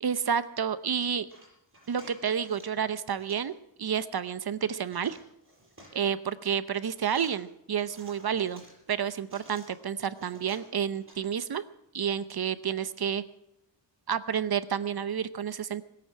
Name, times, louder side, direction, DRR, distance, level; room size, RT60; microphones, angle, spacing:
voice 1, 0.0-1.3 1.9-5.2 5.9-8.6 8.9-11.6 11.9-13.2 14.1-15.8, right 8 dB, 55° right, 14 dB, 0.8 m, -30 dB
sound 1, 1.3-2.7 3.0-3.5 4.8-6.1 6.9-7.3 7.8-9.7 10.1-11.1, right 1 dB, 25° right, 7.4 m, -53 dB
20.5 x 8.6 x 7.7 m, 0.82 s
wide cardioid pair, 115°, 45 cm